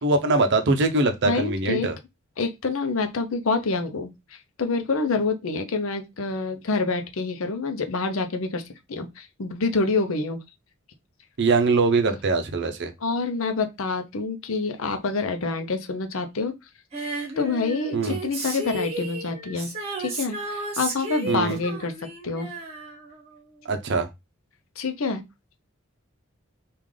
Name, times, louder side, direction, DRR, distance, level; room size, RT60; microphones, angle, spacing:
voice 1, 0.0-2.0 11.4-12.9 17.9-18.2 21.3-21.6 23.6-24.1, right 3 dB, 55° right, 0.6 m, -22 dB
voice 2, 1.2-1.9 2.4-8.6 8.9-10.4 13.0-16.5 17.4-19.7 20.0-21.9 22.2-22.5 24.8-25.2, left 3 dB, 75° left, 0.6 m, -27 dB
Female singing, 16.9-23.5 23.8-23.9, right 2 dB, 30° right, 1.0 m, -33 dB
3.2 x 2.4 x 3.6 m
head